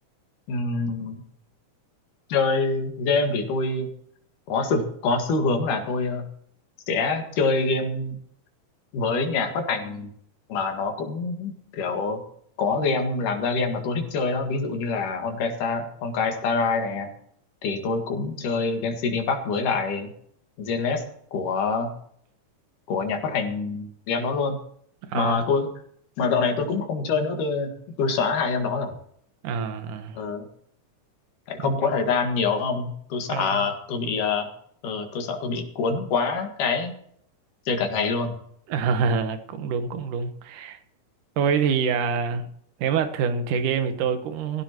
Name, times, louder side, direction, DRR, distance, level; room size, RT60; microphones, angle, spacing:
voice 1, 0.5-1.2 2.3-3.9 4.5-6.3 6.9-8.2 8.9-10.1 10.5-12.2 12.6-17.1 17.6-20.1 20.6-21.0 21.3-21.9 22.9-24.6 25.1-25.7 26.2-27.7 28.0-28.9 30.1-30.5 31.5-34.5 34.8-36.9 37.7-38.3, left 4 dB, 80° left, 3.4 m, -25 dB
voice 2, 25.1-25.4 29.4-30.2 33.3-33.6 38.7-40.8 41.4-42.4 42.8-44.6, right 6 dB, 80° right, 2.8 m, -25 dB
17.0 x 16.0 x 3.0 m
omnidirectional pair, 3.7 m